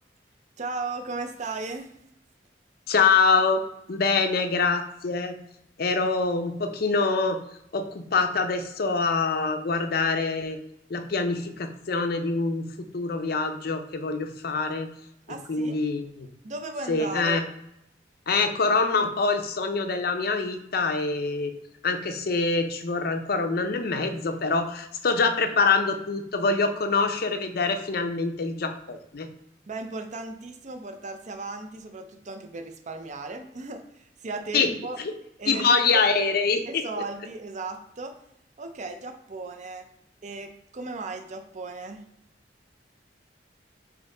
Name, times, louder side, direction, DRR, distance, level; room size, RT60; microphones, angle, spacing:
voice 1, 0.6-1.9 15.3-15.8 16.4-17.4 29.7-35.0 35.4-36.1 36.7-38.1 38.6-39.9 40.2-42.0, right 3 dB, 45° right, 6 dB, 0.5 m, -36 dB
voice 2, 2.9-3.6 3.9-5.4 5.8-7.4 7.7-10.6 10.9-14.9 15.5-16.3 16.9-17.4 18.3-21.5 21.8-29.3 34.5-34.7 35.5-36.8, left 4 dB, 60° left, 6 dB, 0.5 m, -25 dB
4.2 x 2.9 x 3.7 m, 0.78 s
head